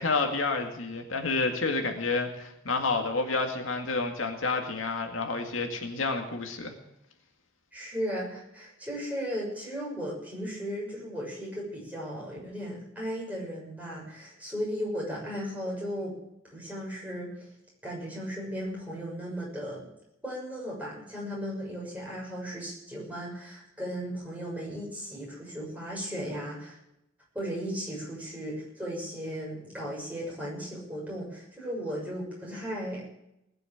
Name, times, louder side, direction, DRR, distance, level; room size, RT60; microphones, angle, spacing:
voice 1, 0.0-6.7, left 3 dB, 80° left, 4 dB, 2.1 m, -29 dB
voice 2, 7.7-16.1 16.5-17.3 17.8-19.8 20.2-26.8 27.3-33.1, equal, 10° right, -5 dB, 6.7 m, -36 dB
19.5 x 6.9 x 8.8 m, 0.82 s
head